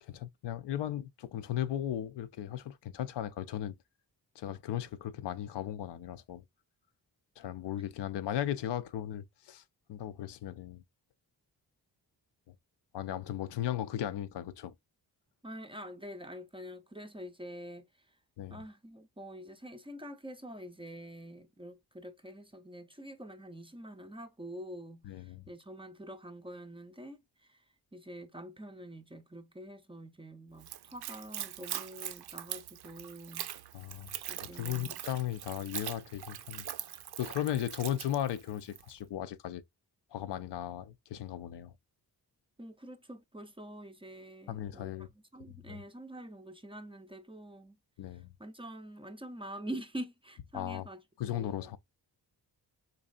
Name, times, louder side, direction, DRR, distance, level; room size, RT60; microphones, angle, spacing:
voice 1, 0.0-3.8 4.4-6.4 7.4-9.6 9.9-10.8 12.9-14.7 18.4-18.6 25.0-25.5 33.7-34.1 34.4-36.7 37.2-39.6 40.1-41.7 44.5-45.1 45.5-45.8 48.0-48.3 50.5-50.9 51.2-51.8, left 11 dB, 80° left, 0.5 m, -36 dB
voice 2, 15.4-17.9 18.5-27.6 27.9-33.5 34.3-35.0 42.6-45.1 45.3-47.8 48.4-51.8, right 1 dB, 15° right, 0.5 m, -46 dB
Splash splatter / Trickle dribble, 30.6-38.9, right 11 dB, 70° right, 0.5 m, -42 dB
4.0 x 3.1 x 2.4 m
cardioid pair, 85°, 41 cm